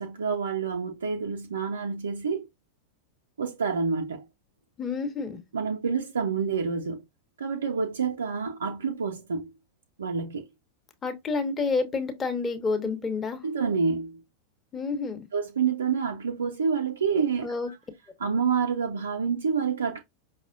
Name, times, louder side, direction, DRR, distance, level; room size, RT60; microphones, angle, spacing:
voice 1, 0.0-2.5 3.4-4.2 5.5-7.0 7.4-9.5 10.0-10.5 13.4-14.2 15.3-17.7 18.2-20.0, right 5 dB, 70° right, 0.4 m, -28 dB
voice 2, 4.8-5.4 11.0-13.4 14.7-15.2 17.4-17.7, left 4 dB, 20° left, 0.7 m, -29 dB
5.3 x 2.0 x 2.5 m
figure-of-eight pair, 90°, 0 cm